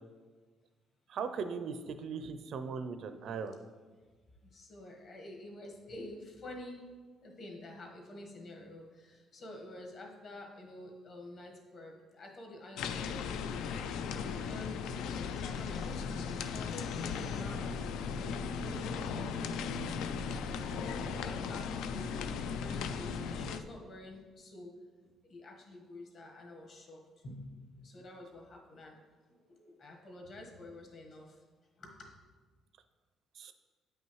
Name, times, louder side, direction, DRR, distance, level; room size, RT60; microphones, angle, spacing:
voice 1, 1.1-3.6 33.4-33.5, right 5 dB, 55° right, 10 dB, 0.4 m, -38 dB
voice 2, 4.4-6.9 7.2-17.7 18.2-19.6 20.3-24.7 25.2-29.0 29.3-31.3 31.8-32.1, left 1 dB, 45° left, 0 dB, 1.4 m, -48 dB
sound 1, 12.8-23.6, left 6 dB, 85° left, 0.3 m, -37 dB
sound 2, 15.4-21.2, left 1 dB, 30° left, 0.7 m, -48 dB
8.8 x 5.5 x 3.1 m, 1.4 s
cardioid pair, 150°, 0 cm